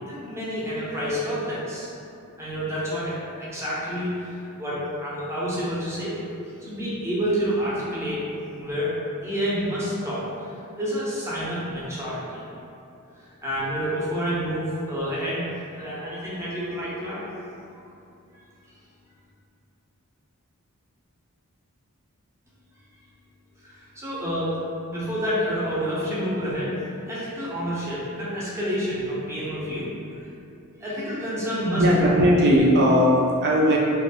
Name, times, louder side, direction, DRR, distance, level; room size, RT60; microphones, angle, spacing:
voice 1, 0.1-1.9 2.4-6.2 6.4-8.2 8.6-9.0 9.2-12.4 13.1-17.2 23.6-24.6 24.9-26.8 27.1-29.9 30.1-30.3 30.8-32.1, equal, 10° right, -9 dB, 0.7 m, -29 dB
voice 2, 31.8-33.8, equal, 50° right, -3 dB, 0.5 m, -18 dB
2.6 x 2.4 x 3.5 m, 2.7 s
head